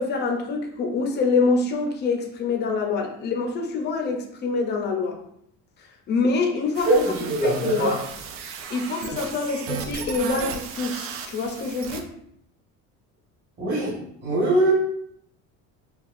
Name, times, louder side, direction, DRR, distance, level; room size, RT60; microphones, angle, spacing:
voice 1, 0.0-5.2 6.1-7.1 7.4-8.0 8.7-12.1, left 4 dB, 35° left, 0.6 m, -25 dB
sound 1, 6.7-12.0, right 6 dB, 45° right, 0.4 m, -35 dB
voice 2, 6.8-7.9 13.6-13.9 14.2-14.7, right 1 dB, 30° right, 1.4 m, -21 dB
5.6 x 2.3 x 2.5 m
cardioid pair, 165°, 32 cm